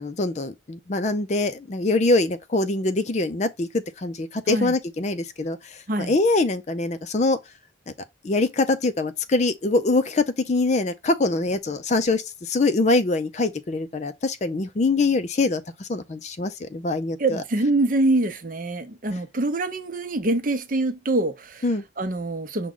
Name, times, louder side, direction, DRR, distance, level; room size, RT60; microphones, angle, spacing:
voice 1, 0.0-7.4 8.2-17.4 21.6-21.8, left 3 dB, 35° left, 0.4 m, -24 dB
voice 2, 17.2-21.6 22.0-22.7, right 2 dB, 45° right, 0.7 m, -24 dB
6.1 x 2.2 x 3.7 m
head